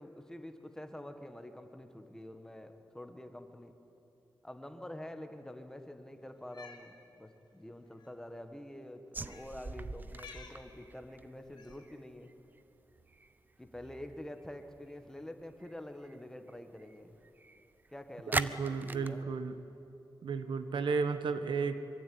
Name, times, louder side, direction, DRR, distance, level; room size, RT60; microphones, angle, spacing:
voice 1, 0.0-3.7 4.4-12.3 13.6-17.2 17.9-19.3, left 1 dB, 5° left, 7 dB, 1.6 m, -47 dB
Cat, 6.4-6.9 7.9-8.1 9.2-9.5 10.1-10.6 11.6-11.9, left 5 dB, 65° left, 3.0 m, -52 dB
sound 1, 9.1-15.7 16.0-16.2 16.5-17.9 18.3-19.1, right 3 dB, 25° right, 0.7 m, -42 dB
voice 2, 18.3-19.6 20.2-21.8, right 5 dB, 85° right, 10 dB, 1.4 m, -33 dB
24.0 x 23.5 x 9.5 m, 2.9 s
wide cardioid pair, 155°, 8 cm